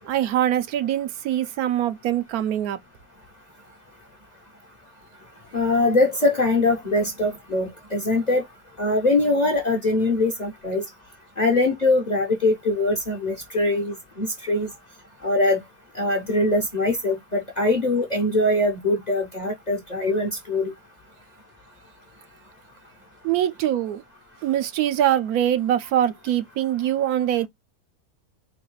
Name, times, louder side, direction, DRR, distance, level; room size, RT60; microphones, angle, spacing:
voice 1, 0.0-2.8 23.2-24.0 24.4-27.5, right 11 dB, 85° right, 1.1 m, -23 dB
voice 2, 5.5-8.4 8.8-10.8 11.4-14.7 15.2-15.6 16.0-17.2 17.6-20.7, left 2 dB, 40° left, 0.6 m, -22 dB
4.0 x 2.3 x 3.0 m
omnidirectional pair, 1.6 m